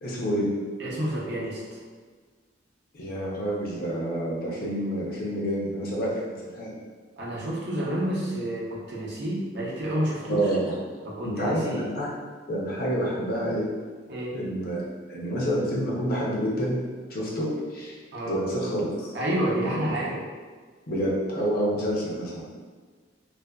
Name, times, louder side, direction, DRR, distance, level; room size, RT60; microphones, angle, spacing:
voice 1, 0.0-0.5 2.9-6.7 10.3-10.6 11.2-12.1 12.5-13.7 14.3-14.8 15.1-16.8 17.1-18.0 18.3-19.1 19.6-19.8 20.9-22.4, equal, 55° left, -4 dB, 0.6 m, -28 dB
voice 2, 0.8-1.8 7.2-10.5 11.0-11.9 14.1-14.3 18.1-18.3 19.1-20.2, right 1 dB, 60° right, -5 dB, 0.6 m, -29 dB
2.5 x 2.2 x 2.2 m, 1.5 s
head